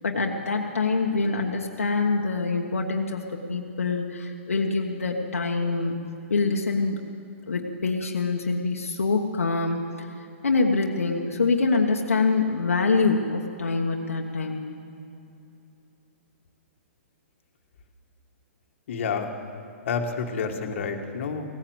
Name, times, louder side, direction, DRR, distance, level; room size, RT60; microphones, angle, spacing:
voice 1, 0.0-7.0 7.5-10.1 10.4-14.6, left 4 dB, 90° left, 1 dB, 1.2 m, -25 dB
voice 2, 18.9-19.3 19.8-21.4, left 5 dB, 60° left, 4 dB, 1.6 m, -29 dB
17.5 x 10.0 x 7.9 m, 2.8 s
hypercardioid pair, 130°, 7 cm